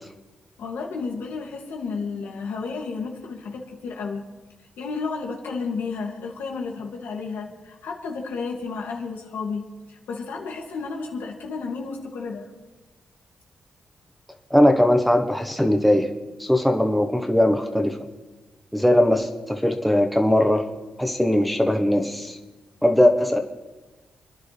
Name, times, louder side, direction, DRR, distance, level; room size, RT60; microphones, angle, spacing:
voice 1, 0.6-4.2 4.8-9.6 9.9-12.4, left 4 dB, 85° left, 0 dB, 2.8 m, -32 dB
voice 2, 14.5-16.1 16.4-18.0 18.7-20.7 21.0-22.4 22.8-23.4, left 1 dB, ahead, 4 dB, 1.4 m, -19 dB
28.5 x 10.5 x 3.6 m, 1.2 s
cardioid pair, 85°, 3 cm